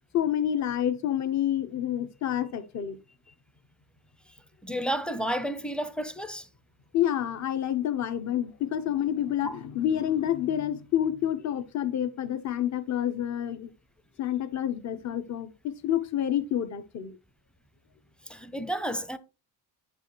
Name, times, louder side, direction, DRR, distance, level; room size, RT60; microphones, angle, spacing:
voice 1, 0.1-3.0 6.9-13.7 14.2-15.5 15.8-17.1, left 10 dB, 40° left, 0.8 m, -28 dB
voice 2, 4.6-6.5 9.4-9.6 15.1-15.2 18.3-19.2, right 1 dB, ahead, 0.6 m, -32 dB
8.3 x 5.5 x 3.1 m
cardioid pair, 95°, 42 cm